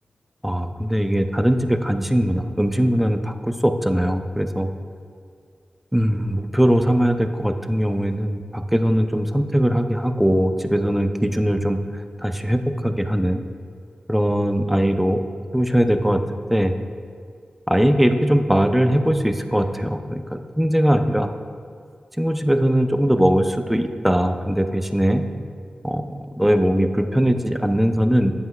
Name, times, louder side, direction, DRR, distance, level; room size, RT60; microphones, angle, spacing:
voice 1, 0.4-4.7 5.9-11.8 12.2-13.4 14.1-15.2 15.5-16.2 16.5-16.8 17.7-21.3 22.2-25.2 25.8-28.3, equal, 5° right, 7 dB, 0.5 m, -20 dB
7.9 x 7.5 x 2.3 m, 2.3 s
cardioid pair, 45°, 3 cm